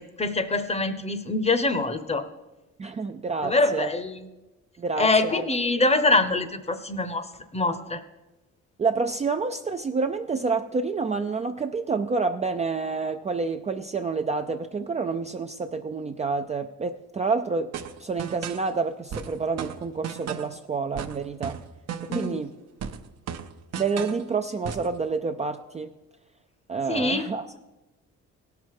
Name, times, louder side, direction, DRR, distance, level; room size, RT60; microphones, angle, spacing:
voice 1, 0.0-2.3 3.4-4.2 5.0-7.3 7.5-8.0 22.1-22.4 26.9-27.3, left 2 dB, 20° left, 11 dB, 0.8 m, -24 dB
voice 2, 2.8-3.9 4.8-5.5 8.8-17.7 18.0-21.6 22.0-22.5 23.8-25.9 26.7-27.5, right 4 dB, 25° right, 6 dB, 0.4 m, -28 dB
sound 1, 17.7-18.7 19.1-20.6 21.0-22.5 22.8-24.2 24.6-24.9, right 7 dB, 60° right, 0.8 m, -35 dB
17.0 x 5.9 x 4.8 m, 1.1 s
cardioid pair, 90°, 30 cm